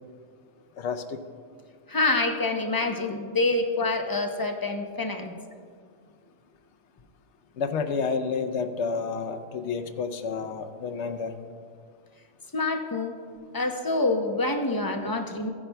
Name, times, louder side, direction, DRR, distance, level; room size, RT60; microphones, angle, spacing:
voice 1, 0.8-1.2 7.6-11.3, left 5 dB, 70° left, 8 dB, 0.9 m, -30 dB
voice 2, 1.9-5.3 12.5-13.1 13.5-15.5, left 2 dB, 30° left, 4 dB, 0.4 m, -26 dB
16.5 x 9.9 x 2.2 m, 2.1 s
omnidirectional pair, 1.3 m